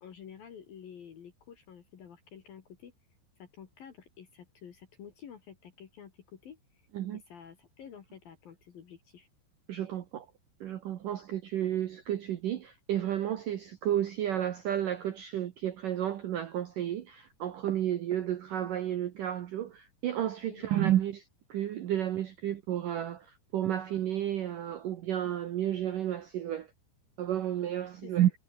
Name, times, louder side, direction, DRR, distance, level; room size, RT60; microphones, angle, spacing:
voice 1, 0.0-2.9 3.4-6.8 7.1-9.3 20.5-20.7 28.0-28.1, left 8 dB, 55° left, 3.6 m, -50 dB
voice 2, 9.7-10.3 10.6-26.7 27.2-28.3, right 11 dB, 75° right, 2.0 m, -31 dB
omnidirectional pair, 5.6 m